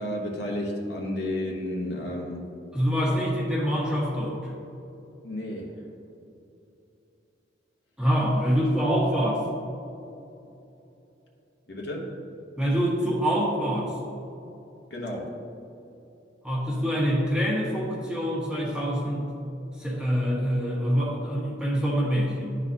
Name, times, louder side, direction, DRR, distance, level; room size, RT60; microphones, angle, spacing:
voice 1, 0.0-2.5 5.2-5.9 11.7-12.2 14.9-15.4, left 1 dB, 65° left, -1 dB, 1.0 m, -32 dB
voice 2, 2.7-4.5 8.0-9.4 12.6-13.9 16.4-19.3 19.8-22.6, equal, 5° right, -6 dB, 1.4 m, -25 dB
11.5 x 4.1 x 2.8 m, 2.9 s
head